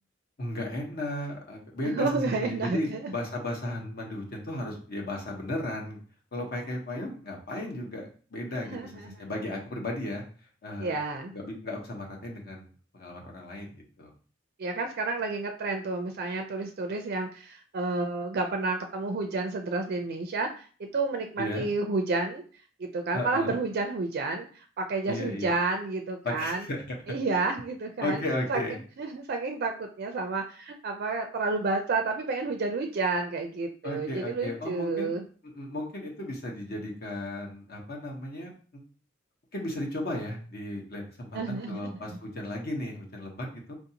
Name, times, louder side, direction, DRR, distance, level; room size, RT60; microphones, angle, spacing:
voice 1, 0.4-6.0 6.3-10.2 10.6-11.0 11.3-14.1 21.4-21.7 23.1-23.6 25.1-25.5 26.2-27.0 28.0-28.8 33.8-35.1 35.5-38.5 39.5-43.7, left 1 dB, 50° left, 0 dB, 1.0 m, -35 dB
voice 2, 1.8-3.1 8.7-9.2 10.8-11.3 14.6-22.4 22.8-26.7 27.1-28.2 28.5-28.6 29.0-35.2 41.3-41.9, right 3 dB, 50° right, 5 dB, 0.4 m, -30 dB
4.6 x 2.6 x 2.8 m, 0.41 s
head